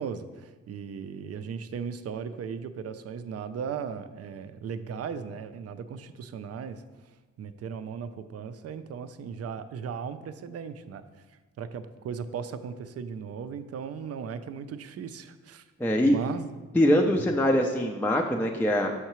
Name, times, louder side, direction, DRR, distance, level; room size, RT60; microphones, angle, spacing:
voice 1, 0.0-6.8 7.4-11.0 11.6-15.6 16.0-16.6, right 6 dB, 55° right, 11 dB, 0.4 m, -37 dB
voice 2, 15.8-16.2 16.7-18.9, equal, 5° left, 2 dB, 0.4 m, -23 dB
6.4 x 5.6 x 3.0 m, 1.3 s
cardioid pair, 100°, 29 cm